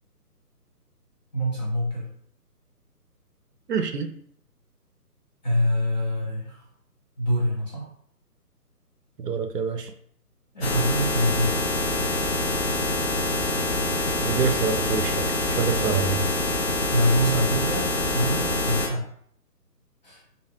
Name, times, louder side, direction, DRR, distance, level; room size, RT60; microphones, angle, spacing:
voice 1, 1.3-2.0 5.4-6.6 7.2-7.8 10.5-11.6 16.9-19.0 20.0-20.2, equal, 25° left, -6 dB, 0.9 m, -25 dB
voice 2, 3.7-4.1 9.2-9.9 14.2-16.2, right 5 dB, 75° right, 6 dB, 0.5 m, -26 dB
sound 1, 10.6-18.9, left 2 dB, 45° left, 0.5 m, -25 dB
3.2 x 2.6 x 2.2 m, 0.63 s
figure-of-eight pair, 145°, 48 cm